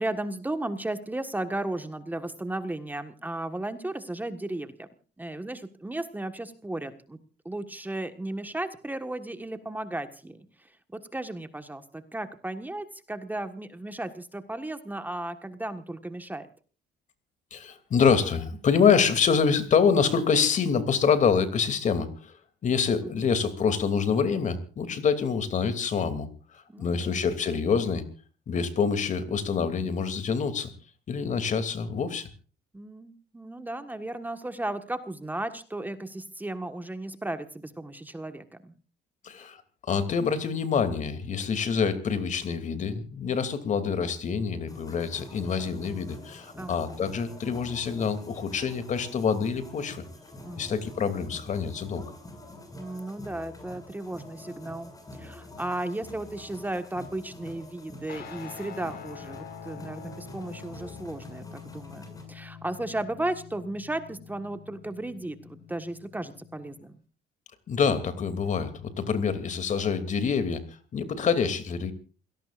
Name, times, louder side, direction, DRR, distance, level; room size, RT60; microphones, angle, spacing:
voice 1, 0.0-4.9 5.2-7.2 7.4-16.5 23.2-23.3 26.7-27.2 32.7-38.7 46.6-46.9 50.4-50.7 52.7-67.0, right 1 dB, 10° right, 8 dB, 1.5 m, -35 dB
voice 2, 17.5-22.3 22.6-28.0 28.5-30.7 31.1-32.3 39.2-39.6 39.9-50.0 50.5-52.1 67.7-70.6 70.9-71.9, left 6 dB, 45° left, 10 dB, 2.8 m, -26 dB
sound 1, 44.7-62.2, left 1 dB, 20° left, 6.9 m, -47 dB
Guitar, 58.1-66.8, left 7 dB, 65° left, 5.0 m, -45 dB
28.5 x 17.5 x 2.5 m, 0.39 s
cardioid pair, 110°, 17 cm